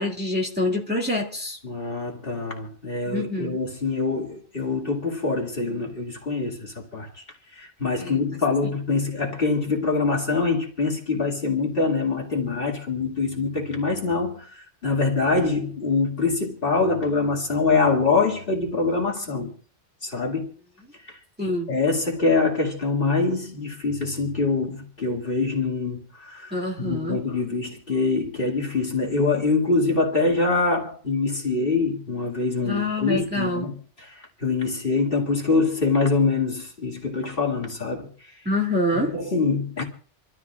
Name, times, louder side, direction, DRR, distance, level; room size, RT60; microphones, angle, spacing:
voice 1, 0.0-1.6 3.1-3.6 8.0-8.2 21.4-21.7 26.5-27.2 32.6-33.7 38.5-39.1, left 1 dB, 10° right, 2.1 m, -26 dB
voice 2, 1.6-7.2 7.5-19.5 20.0-20.5 21.0-21.2 21.7-38.1 38.9-39.8, left 3 dB, 50° left, 2.6 m, -24 dB
28.0 x 13.0 x 2.4 m
omnidirectional pair, 1.2 m